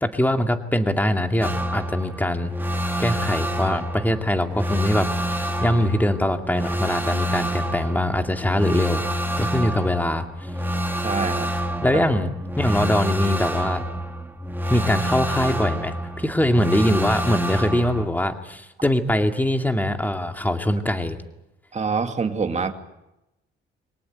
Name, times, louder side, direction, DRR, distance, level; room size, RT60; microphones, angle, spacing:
voice 1, 0.0-2.5 3.0-9.0 9.4-10.5 11.8-12.3 12.6-13.8 14.7-21.2, left 1 dB, 10° left, 5 dB, 2.4 m, -22 dB
sound 1, 1.4-18.1, equal, 10° right, 2.4 m, -27 dB
voice 2, 11.0-11.5 21.7-22.7, right 5 dB, 35° right, 5 dB, 2.4 m, -25 dB
25.0 x 18.0 x 9.3 m, 0.95 s
cardioid pair, 90°, 20 cm